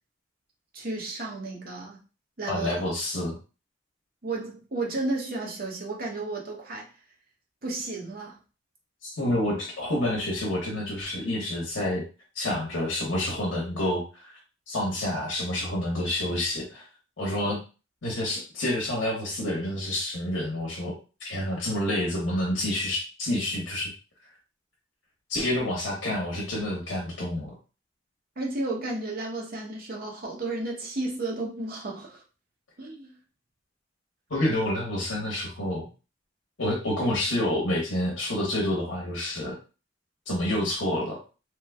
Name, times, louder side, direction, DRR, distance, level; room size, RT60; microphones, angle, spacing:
voice 1, 0.7-2.0 2.4-2.7 4.2-6.9 7.6-8.4 28.4-32.2 32.8-33.1, right 2 dB, 50° right, -1 dB, 0.9 m, -33 dB
voice 2, 2.5-3.4 9.0-12.0 12.3-14.3 14.7-16.8 17.2-17.6 18.0-20.9 21.2-23.9 25.3-27.5 34.3-35.9 36.6-39.6 40.3-41.2, left 1 dB, 70° left, -2 dB, 1.0 m, -28 dB
3.2 x 2.2 x 3.4 m, 0.33 s
head